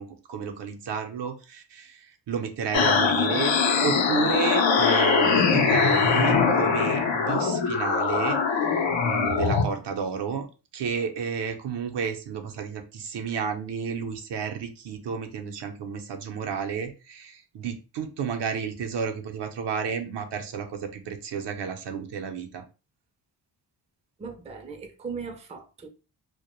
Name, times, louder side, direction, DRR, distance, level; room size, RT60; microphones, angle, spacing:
voice 1, 0.0-3.5 3.8-8.4 9.0-10.5 10.7-22.6, right 6 dB, 70° right, 0.6 m, -31 dB
sound 1, 2.7-9.6, left 5 dB, 80° left, 0.6 m, -22 dB
voice 2, 24.2-25.9, right 5 dB, 15° right, 0.4 m, -38 dB
2.1 x 2.1 x 2.9 m
cardioid pair, 75°, 44 cm